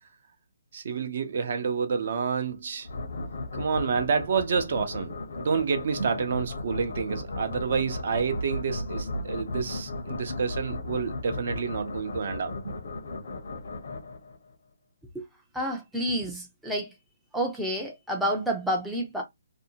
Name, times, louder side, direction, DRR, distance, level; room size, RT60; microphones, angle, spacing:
voice 1, 0.7-2.9 3.5-12.7, right 5 dB, 50° right, 0.6 m, -29 dB
sound 1, 2.8-14.5, left 2 dB, 65° left, 0.7 m, -36 dB
voice 2, 15.5-16.9 17.3-19.2, equal, ahead, 0.4 m, -29 dB
2.6 x 2.1 x 2.7 m
hypercardioid pair, 165°, 0 cm